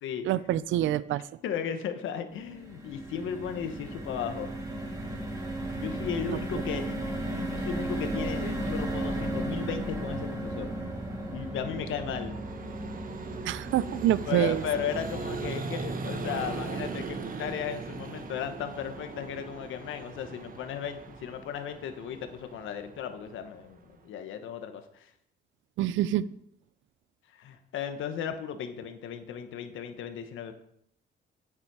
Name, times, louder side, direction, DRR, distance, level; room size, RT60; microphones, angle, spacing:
voice 1, 0.2-1.3 6.2-6.4 13.4-14.6 25.8-26.2, right 12 dB, 75° right, 18 dB, 0.4 m, -26 dB
voice 2, 1.4-4.5 5.7-7.0 7.3-10.8 11.3-12.4 14.2-25.1 27.3-30.5, left 8 dB, 80° left, 8 dB, 1.1 m, -35 dB
sound 1, 2.3-18.6 19.0-19.2 19.4-19.6, right 1 dB, 15° right, 2.4 m, -36 dB
Vehicle, 9.8-24.0, right 4 dB, 45° right, 1.1 m, -40 dB
8.9 x 8.4 x 4.8 m, 0.72 s
cardioid pair, 90°, 20 cm